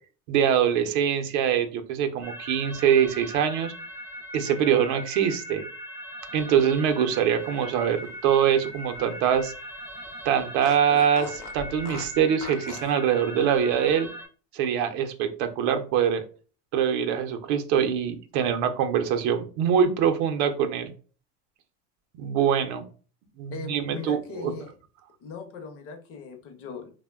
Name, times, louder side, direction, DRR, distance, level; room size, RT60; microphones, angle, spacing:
voice 1, 0.3-3.7 4.3-5.7 6.3-9.5 10.2-14.1 14.5-16.2 16.7-20.9 22.2-22.8 23.4-24.5, right 8 dB, 70° right, 7 dB, 0.5 m, -24 dB
sound 1, 2.2-14.3, equal, 5° right, 0.4 m, -40 dB
Fart, 7.6-9.7 10.0-10.1 10.6-13.0, left 4 dB, 80° left, 0.8 m, -42 dB
voice 2, 23.5-24.7 25.2-26.9, left 5 dB, 40° left, 6 dB, 0.6 m, -39 dB
2.8 x 2.1 x 2.3 m, 0.38 s
supercardioid pair, 115°, 35 cm